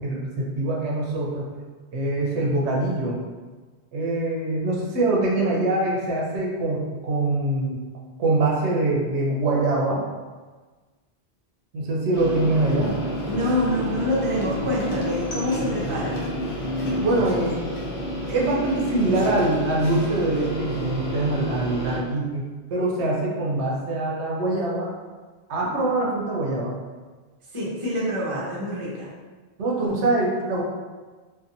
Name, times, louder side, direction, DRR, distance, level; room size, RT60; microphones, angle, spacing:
voice 1, 0.0-1.5 1.9-3.2 3.9-7.8 8.2-10.0 11.7-12.9 17.0-17.6 18.3-22.4 22.7-25.0 25.5-26.8 29.6-30.6, right 2 dB, 80° right, -3 dB, 0.9 m, -24 dB
sound 1, 12.1-22.0, equal, 75° left, 0.9 m, -29 dB
voice 2, 13.3-16.2 27.5-29.1, left 1 dB, 35° right, -6 dB, 0.6 m, -26 dB
2.6 x 2.5 x 2.5 m, 1.3 s
omnidirectional pair, 1.1 m